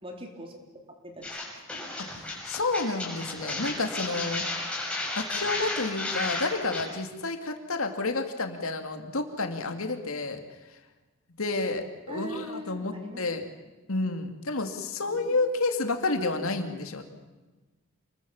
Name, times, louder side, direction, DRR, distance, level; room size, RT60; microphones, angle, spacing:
voice 1, 0.0-0.6 1.0-1.5 12.1-13.2 15.0-15.3, right 1 dB, 25° right, 2 dB, 3.8 m, -41 dB
sound 1, 1.2-6.8, left 2 dB, 5° left, 6.3 m, -33 dB
voice 2, 2.0-4.4 5.1-10.4 11.4-13.4 13.9-17.0, left 3 dB, 75° left, 6 dB, 2.6 m, -30 dB
28.5 x 22.0 x 7.3 m, 1.2 s
head